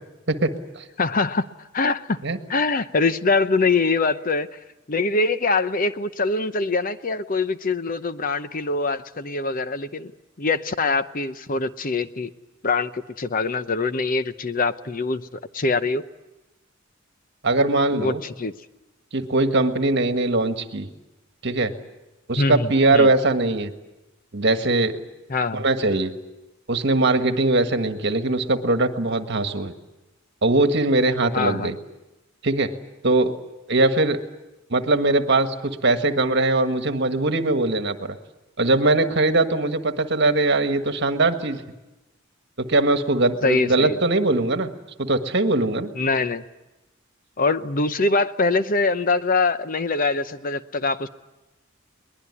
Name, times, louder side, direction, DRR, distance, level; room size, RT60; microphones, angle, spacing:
voice 1, 0.3-0.8 2.2-2.4 17.4-18.2 19.1-20.9 21.4-21.7 22.3-23.7 24.3-25.0 25.5-26.1 26.7-29.7 30.4-31.7 32.4-32.7 33.0-33.3 33.7-34.2 34.7-38.2 38.6-41.6 42.6-44.7 45.0-45.9, right 2 dB, 55° right, 7 dB, 1.6 m, -21 dB
voice 2, 1.0-1.5 1.7-2.2 2.5-4.5 4.9-10.1 10.4-12.3 12.6-15.3 15.5-16.0 17.9-18.5 22.4-23.1 25.3-25.6 31.3-31.7 43.4-44.0 46.0-46.4 47.4-51.1, left 3 dB, 40° left, 12 dB, 0.8 m, -23 dB
22.5 x 20.5 x 9.7 m, 1.0 s
head